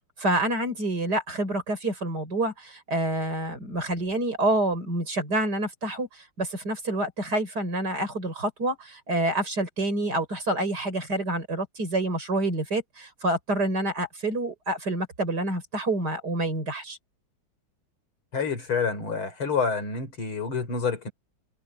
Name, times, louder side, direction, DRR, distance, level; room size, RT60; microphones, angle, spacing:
voice 1, 0.2-17.0, right 1 dB, 50° right, 5.8 m, -27 dB
voice 2, 18.3-21.1, left 5 dB, 80° left, 5.2 m, -28 dB
omnidirectional pair, 2.3 m